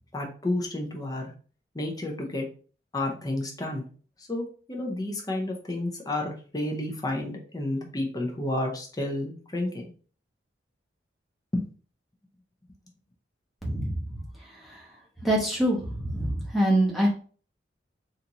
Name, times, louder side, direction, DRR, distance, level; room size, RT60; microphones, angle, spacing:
voice 1, 0.1-1.3 1.7-2.5 2.9-3.8 4.3-9.9 11.5-11.7, left 1 dB, 20° left, 0 dB, 0.6 m, -31 dB
voice 2, 13.6-14.0 15.2-17.1, right 1 dB, ahead, -4 dB, 0.9 m, -24 dB
3.9 x 2.5 x 2.8 m, 0.41 s
head